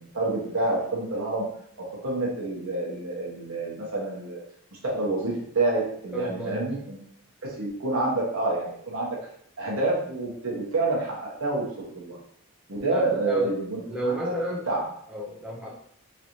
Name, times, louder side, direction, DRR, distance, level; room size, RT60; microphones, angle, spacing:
voice 1, 0.0-1.4 1.8-4.4 4.8-7.0 7.6-9.2 9.6-11.7 12.0-12.2 12.7-13.8 14.0-14.3 14.7-14.8, right 2 dB, 75° right, -4 dB, 1.1 m, -28 dB
voice 2, 6.1-6.7 12.9-13.5 13.9-14.7 15.1-15.7, right 1 dB, 5° right, -5 dB, 0.5 m, -31 dB
3.1 x 3.0 x 2.7 m, 0.65 s
head